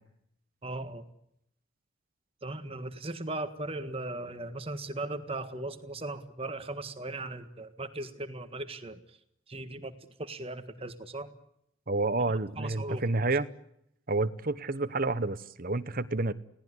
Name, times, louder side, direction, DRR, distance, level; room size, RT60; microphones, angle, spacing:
voice 1, 0.6-1.0 2.4-9.0 9.5-11.3 12.6-13.0, right 2 dB, 30° right, 10 dB, 1.6 m, -38 dB
voice 2, 11.9-13.5 14.1-16.3, right 2 dB, 45° right, 13 dB, 1.1 m, -29 dB
29.5 x 18.0 x 9.8 m, 0.78 s
head